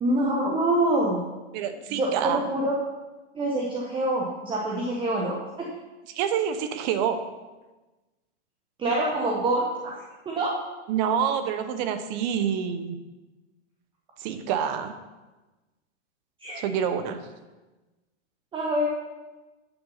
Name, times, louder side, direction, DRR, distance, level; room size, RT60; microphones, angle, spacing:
voice 1, 0.0-1.2 2.0-2.7 3.3-5.7 8.8-9.9 10.3-10.5 16.4-16.6 18.5-18.9, right 1 dB, 15° right, -2 dB, 1.0 m, -25 dB
voice 2, 1.5-2.4 6.1-7.2 10.9-13.0 14.2-14.9 16.5-17.2, right 8 dB, 40° right, 9 dB, 0.9 m, -27 dB
8.5 x 7.0 x 5.6 m, 1.1 s
hypercardioid pair, 140°, 34 cm